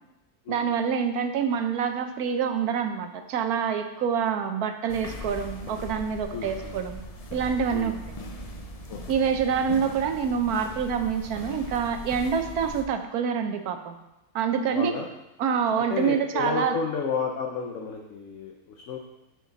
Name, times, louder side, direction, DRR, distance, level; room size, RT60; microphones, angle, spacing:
voice 1, 0.5-7.0 7.3-8.0 9.1-13.9 14.3-15.0 15.4-16.7, right 7 dB, 75° right, 7 dB, 1.1 m, -26 dB
sound 1, 4.9-12.8, left 2 dB, 80° left, 0.3 m, -39 dB
voice 2, 6.3-6.8 7.7-7.9 8.9-9.0 14.7-15.1 15.9-19.0, left 5 dB, 60° left, 2 dB, 0.9 m, -31 dB
8.7 x 4.5 x 4.0 m, 0.97 s
omnidirectional pair, 1.7 m